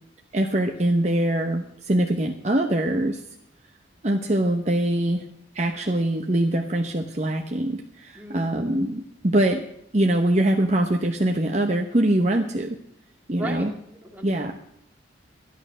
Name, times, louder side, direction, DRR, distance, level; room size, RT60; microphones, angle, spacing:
voice 1, 0.3-3.2 4.0-5.2 5.5-9.6 9.9-12.8 13.3-13.7 14.2-14.6, right 1 dB, 35° right, 3 dB, 0.9 m, -23 dB
voice 2, 8.1-8.5 13.4-14.6, right 1 dB, 10° right, -1 dB, 2.2 m, -37 dB
13.5 x 11.5 x 6.2 m, 0.75 s
head